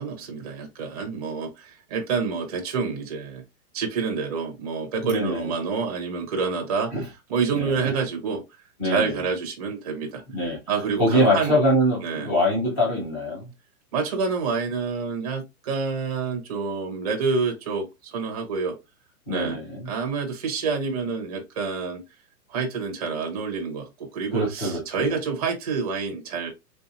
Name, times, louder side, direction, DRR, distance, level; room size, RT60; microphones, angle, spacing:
voice 1, 0.0-3.4 3.7-6.9 7.3-8.4 8.8-10.2 10.7-11.5 12.0-12.3 13.9-18.7 19.3-19.6 19.9-22.0 22.5-26.5, right 5 dB, 25° right, 0.6 m, -28 dB
voice 2, 5.0-5.5 6.9-7.0 7.5-7.9 8.8-9.2 10.3-10.6 11.0-13.5 19.3-19.9 24.3-25.1, equal, 10° left, 0.7 m, -24 dB
3.6 x 2.7 x 2.5 m
hypercardioid pair, 175°, 47 cm